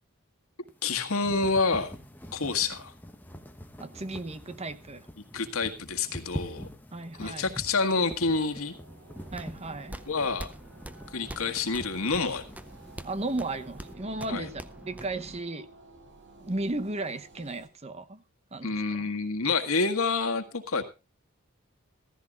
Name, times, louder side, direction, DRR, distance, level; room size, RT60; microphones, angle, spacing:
sound 1, 0.7-13.9, equal, 10° left, 1.1 m, -45 dB
voice 1, 0.8-2.0 2.3-2.9 5.2-6.7 7.2-8.7 10.1-10.5 11.1-12.4 14.3-14.5 18.6-20.8, left 4 dB, 90° left, 1.8 m, -28 dB
voice 2, 3.8-5.1 6.9-7.5 9.3-10.0 13.0-14.6 14.9-15.7 16.4-18.2 18.5-18.7 19.0-19.1, right 2 dB, 30° right, 0.9 m, -34 dB
sound 2, 7.7-17.7, right 3 dB, 55° right, 3.0 m, -53 dB
sound 3, 9.2-15.4, right 1 dB, 5° right, 0.6 m, -45 dB
15.0 x 14.5 x 2.5 m
head